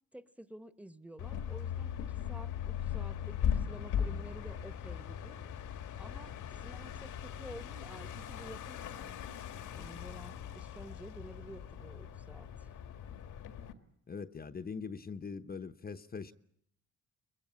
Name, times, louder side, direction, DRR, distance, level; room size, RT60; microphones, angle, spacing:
voice 1, 0.1-6.4 6.6-9.1 9.7-12.7, right 1 dB, 5° right, 1.2 m, -51 dB
sound 1, 1.2-13.7, left 8 dB, 85° left, 1.9 m, -39 dB
voice 2, 14.1-16.3, left 5 dB, 30° left, 1.0 m, -42 dB
23.5 x 21.5 x 8.7 m
cardioid pair, 90°, 30 cm